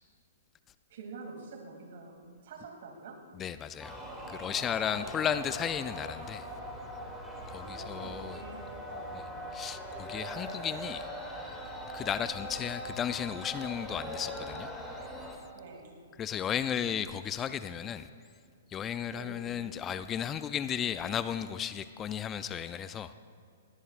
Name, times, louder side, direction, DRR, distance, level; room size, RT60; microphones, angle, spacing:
voice 1, 0.9-2.1 2.4-3.2 4.9-5.3 7.6-9.4 15.5-15.9 19.1-19.4, right 4 dB, 60° right, 1 dB, 2.7 m, -47 dB
voice 2, 3.4-4.0 4.3-6.5 7.5-8.4 9.1-9.2 9.5-11.1 11.9-14.7 16.2-18.1 18.7-23.1, left 9 dB, 20° left, 13 dB, 0.4 m, -34 dB
sound 1, 3.8-15.4, equal, ahead, 2.2 m, -41 dB
19.5 x 17.5 x 2.5 m, 2.3 s
hypercardioid pair, 125°, 0 cm